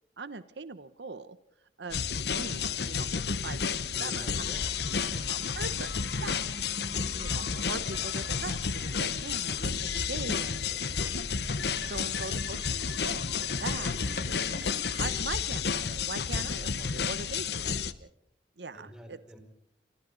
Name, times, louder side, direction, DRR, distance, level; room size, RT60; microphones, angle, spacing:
voice 1, 0.2-1.4 1.8-4.7 5.0-6.4 7.2-10.6 10.9-11.1 11.8-14.3 14.9-18.1 18.6-19.2, right 3 dB, 75° right, 13 dB, 1.0 m, -41 dB
sound 1, 1.9-17.9, left 6 dB, 65° left, 1.0 m, -31 dB
voice 2, 3.9-5.4 10.2-11.2 11.7-12.5 17.1-17.6 18.7-19.4, equal, 5° right, 4 dB, 4.4 m, -51 dB
sound 2, 4.3-15.3, left 3 dB, 85° left, 6.5 m, -44 dB
28.5 x 26.0 x 4.0 m, 0.75 s
head